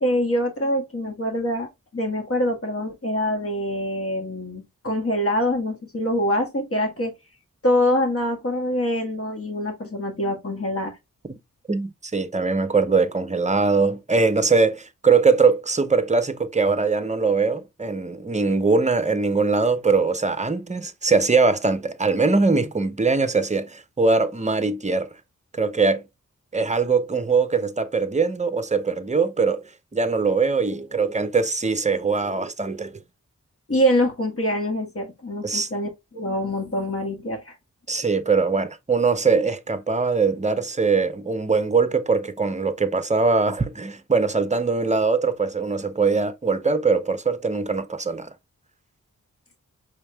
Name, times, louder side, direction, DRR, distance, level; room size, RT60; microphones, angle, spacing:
voice 1, 0.0-7.1 7.6-10.9 33.7-37.5, equal, 45° left, 1.6 m, -24 dB
voice 2, 11.7-25.1 25.6-26.0 26.5-29.7 29.9-33.0 35.4-35.7 37.9-48.3, right 4 dB, 20° right, 0.7 m, -21 dB
5.1 x 3.5 x 2.3 m
wide cardioid pair, 65°, 32 cm